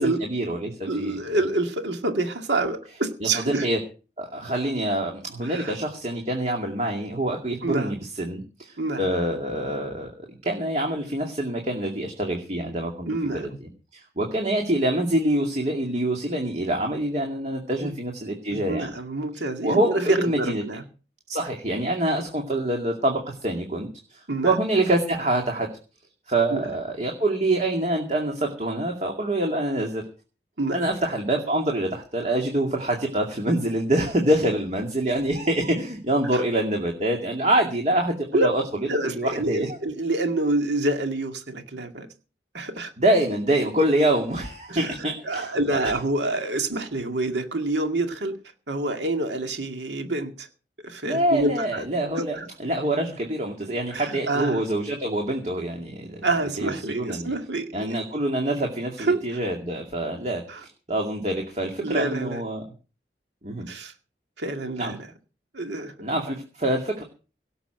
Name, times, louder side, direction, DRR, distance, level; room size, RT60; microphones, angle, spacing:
voice 1, 0.0-1.2 3.2-3.8 4.2-13.1 13.3-13.5 13.9-18.9 19.6-20.6 21.3-25.7 26.3-30.0 30.7-38.6 39.0-39.8 43.0-45.5 45.8-46.0 51.0-56.2 56.6-57.3 57.7-62.6 63.4-63.7 64.8-64.9 66.0-67.0, right 1 dB, 40° right, 2.3 m, -25 dB
voice 2, 0.9-3.7 5.4-5.7 7.6-8.0 8.8-9.1 13.1-13.6 17.8-17.9 18.5-20.8 24.3-24.6 26.5-26.6 30.6-30.8 36.3-36.4 38.3-38.5 38.9-42.1 42.5-42.9 44.7-48.3 48.7-50.5 50.8-51.8 52.2-52.5 53.9-54.6 56.2-58.0 59.0-59.4 60.5-60.6 61.8-62.4 63.7-63.9 64.4-65.1 65.5-65.9, right 2 dB, 90° right, 2.1 m, -27 dB
17.5 x 7.0 x 7.9 m
head